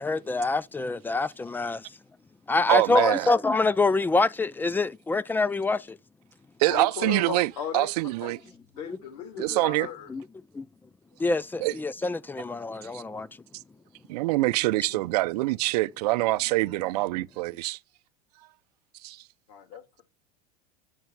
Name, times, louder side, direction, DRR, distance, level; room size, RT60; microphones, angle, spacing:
voice 1, 0.0-1.9 2.5-6.0 10.1-10.2 10.5-10.7 11.2-13.3, left 3 dB, 10° left, 0.3 m, -26 dB
voice 2, 2.7-3.3 6.6-8.4 9.4-9.9 11.6-11.8 12.9-13.0 14.1-17.8 19.0-19.2, right 19 dB, 75° right, 0.5 m, -25 dB
voice 3, 6.7-7.9 8.2-8.3 8.8-10.1 19.5-20.0, left 7 dB, 75° left, 2.5 m, -36 dB
8.0 x 3.1 x 5.8 m
supercardioid pair, 115°, 20 cm